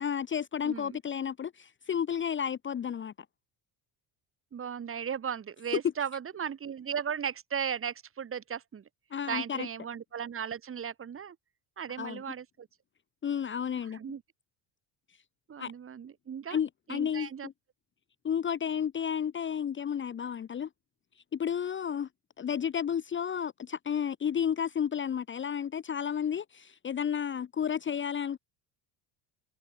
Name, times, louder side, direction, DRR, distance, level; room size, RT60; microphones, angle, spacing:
voice 1, 0.0-3.1 9.1-9.7 12.0-12.2 13.2-14.0 15.6-15.7 16.5-17.5 18.2-20.7 21.3-22.1 22.4-28.4, left 8 dB, 25° left, 1.2 m, -32 dB
voice 2, 0.6-1.0 4.5-8.8 9.3-11.4 11.8-12.7 13.9-14.2 15.5-16.6 16.9-17.5, right 8 dB, 30° right, 4.4 m, -36 dB
cardioid pair, 165°, 45 cm